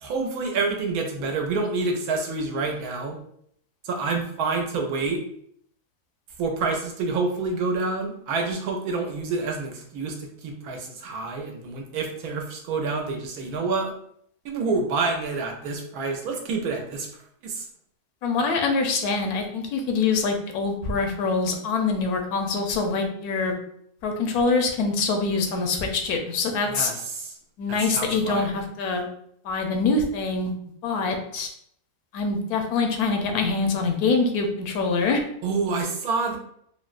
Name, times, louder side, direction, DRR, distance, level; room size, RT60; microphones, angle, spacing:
voice 1, 0.0-3.2 3.8-5.2 6.4-13.9 14.4-17.1 17.4-17.7 26.7-27.4 27.7-28.6 35.4-36.4, right 4 dB, 85° right, 2 dB, 1.1 m, -28 dB
voice 2, 18.2-23.5 24.0-26.9 27.6-29.1 29.4-30.5 30.8-31.5 32.1-35.2, left 4 dB, 80° left, 4 dB, 1.1 m, -24 dB
3.6 x 2.0 x 2.4 m, 0.68 s
omnidirectional pair, 1.6 m